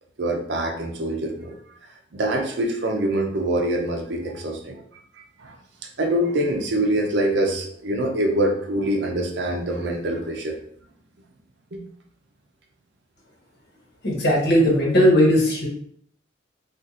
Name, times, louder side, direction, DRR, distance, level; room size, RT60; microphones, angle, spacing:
voice 1, 0.2-1.6 2.1-4.8 5.4-5.6 6.0-10.6 11.7-11.8, right 1 dB, 60° right, 2 dB, 0.6 m, -24 dB
voice 2, 14.0-15.7, equal, 55° left, -4 dB, 1.2 m, -18 dB
2.8 x 2.5 x 3.6 m, 0.65 s
head